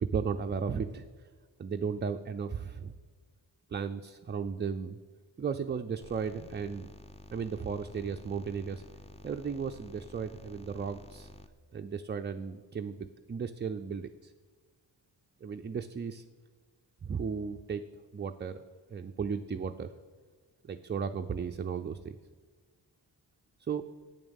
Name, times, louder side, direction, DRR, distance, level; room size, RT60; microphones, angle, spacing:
voice 1, 0.0-1.3 1.6-2.9 3.7-5.0 5.4-6.9 7.3-8.8 9.2-11.3 11.7-14.3 15.4-16.2 17.0-17.8 18.1-18.6 18.9-19.9 20.6-22.2 23.7-23.9, right 6 dB, 25° right, 6 dB, 0.4 m, -35 dB
sound 1, 6.0-11.5, left 2 dB, 15° left, 0.7 m, -51 dB
8.3 x 7.2 x 7.0 m, 1.5 s
cardioid pair, 70°, 45 cm